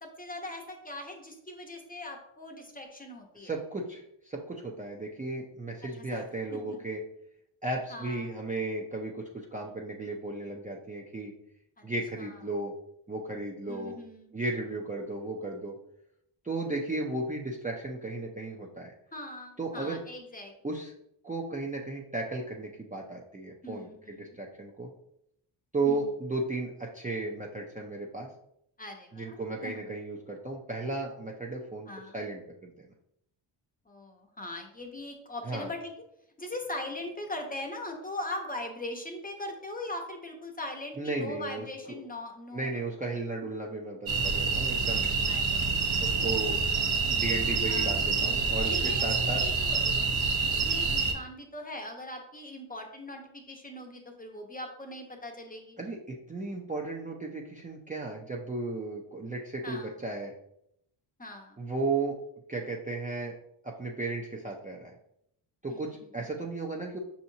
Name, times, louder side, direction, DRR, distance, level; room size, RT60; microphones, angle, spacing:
voice 1, 0.0-3.5 6.1-6.2 6.5-6.8 7.9-8.3 12.2-12.4 13.7-14.3 19.1-20.5 23.6-24.4 25.9-26.0 28.8-29.4 29.6-29.9 31.9-32.2 33.9-35.9 36.4-42.8 45.3-45.8 47.7-48.0 48.6-50.1 50.5-55.8 59.6-59.9 61.2-61.6 65.7-65.9, left 1 dB, 15° left, 3 dB, 0.7 m, -40 dB
voice 2, 3.4-7.0 7.6-11.3 11.8-12.7 13.1-13.9 14.3-15.7 16.4-18.9 19.6-20.0 20.6-20.9 21.2-24.9 25.7-28.3 29.1-32.9 35.4-35.7 41.0-42.0 42.5-45.1 46.0-46.6 47.1-49.4 55.8-60.3 61.6-62.2 62.5-63.3 63.6-64.9 65.6-67.0, right 2 dB, 15° right, -2 dB, 0.5 m, -35 dB
sound 1, 44.1-51.1, right 4 dB, 70° right, 0.9 m, -27 dB
5.4 x 2.8 x 2.7 m, 0.75 s
cardioid pair, 75°, 50 cm